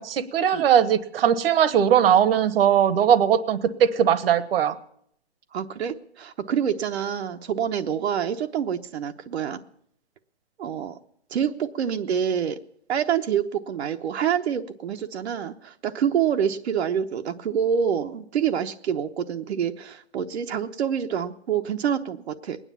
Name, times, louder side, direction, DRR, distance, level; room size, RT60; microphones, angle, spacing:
voice 1, 0.0-4.7, right 9 dB, 60° right, 15 dB, 1.1 m, -20 dB
voice 2, 5.5-9.6 10.6-11.0 11.3-12.6 12.9-22.6, right 8 dB, 80° right, 5 dB, 1.0 m, -26 dB
21.0 x 9.8 x 7.1 m, 0.68 s
hypercardioid pair, 160°, 32 cm